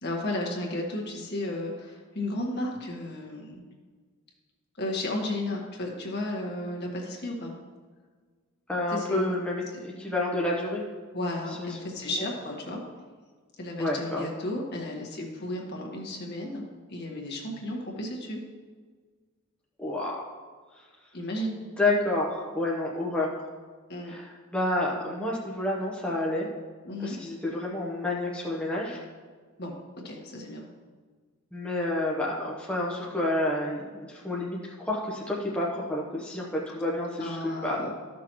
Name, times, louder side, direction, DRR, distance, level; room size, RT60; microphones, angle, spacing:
voice 1, 0.0-3.6 4.8-7.5 8.9-9.3 11.1-12.8 13.6-16.6 16.9-18.4 21.1-21.6 23.9-24.1 26.8-27.2 29.6-29.8 30.0-30.6 37.2-37.9, left 1 dB, 50° left, -1 dB, 1.6 m, -33 dB
voice 2, 8.7-10.8 11.6-11.8 13.8-14.3 19.8-20.2 21.8-23.3 24.0-26.5 27.0-29.0 31.5-37.9, left 1 dB, 5° left, -4 dB, 0.9 m, -29 dB
13.5 x 6.1 x 3.1 m, 1.5 s
head